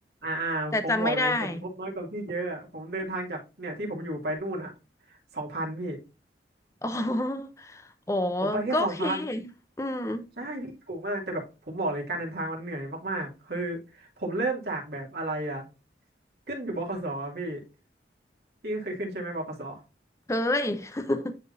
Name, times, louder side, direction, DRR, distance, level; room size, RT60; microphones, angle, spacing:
voice 1, 0.2-4.7 5.1-6.0 8.4-9.2 10.4-15.7 16.5-17.6 18.6-19.8, right 2 dB, 70° right, 2.7 m, -32 dB
voice 2, 0.7-1.6 6.8-9.5 9.8-10.3 20.3-21.4, left 1 dB, 15° left, 0.7 m, -28 dB
10.5 x 3.6 x 2.7 m
head